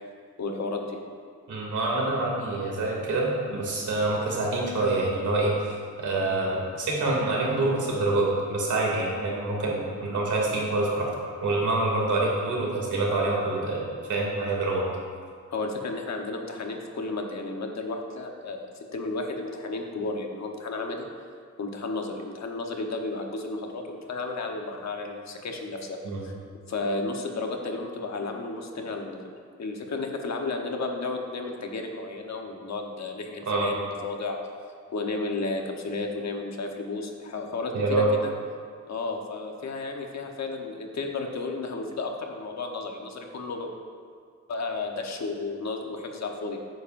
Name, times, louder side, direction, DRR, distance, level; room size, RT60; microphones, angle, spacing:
voice 1, 0.4-1.0 15.5-18.6 18.9-21.1 21.6-26.3 26.7-29.2 29.6-34.4 34.9-38.3 38.9-43.7 44.5-46.6, left 3 dB, 60° left, 2 dB, 1.1 m, -33 dB
voice 2, 1.5-11.1 11.4-14.8 26.0-26.2 33.5-33.7 37.7-38.1, right 2 dB, 75° right, -3 dB, 2.7 m, -26 dB
12.5 x 9.3 x 2.6 m, 2.1 s
wide cardioid pair, 115°, 30 cm